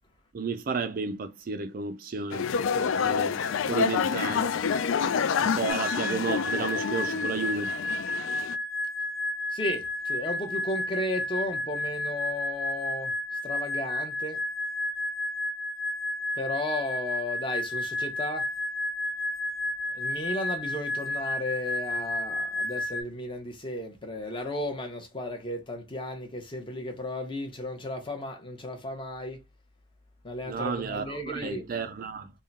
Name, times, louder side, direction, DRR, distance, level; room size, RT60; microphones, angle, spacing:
voice 1, 0.3-4.6 5.4-7.8 30.4-32.3, right 4 dB, 40° right, 0.3 m, -32 dB
sound 1, 2.3-8.6, left 6 dB, 70° left, 0.3 m, -28 dB
sound 2, 5.7-23.0, left 2 dB, 50° left, 1.2 m, -32 dB
voice 2, 9.5-13.1 13.4-14.4 16.4-18.5 19.9-29.4 30.2-31.6, left 1 dB, 25° left, 0.8 m, -34 dB
3.6 x 2.2 x 4.0 m
head